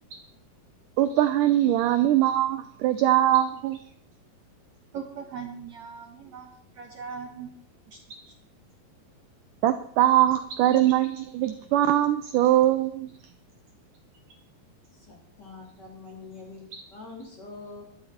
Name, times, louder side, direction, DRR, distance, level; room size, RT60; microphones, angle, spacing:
voice 1, 1.0-3.8 8.1-8.2 9.6-13.1 16.7-16.8, right 13 dB, 75° right, 11 dB, 2.0 m, -22 dB
voice 2, 4.9-6.5 6.8-7.5, right 6 dB, 60° right, 4 dB, 2.1 m, -39 dB
voice 3, 14.9-17.8, left 3 dB, 30° left, -1 dB, 4.1 m, -44 dB
15.0 x 12.5 x 4.3 m, 0.64 s
omnidirectional pair, 4.3 m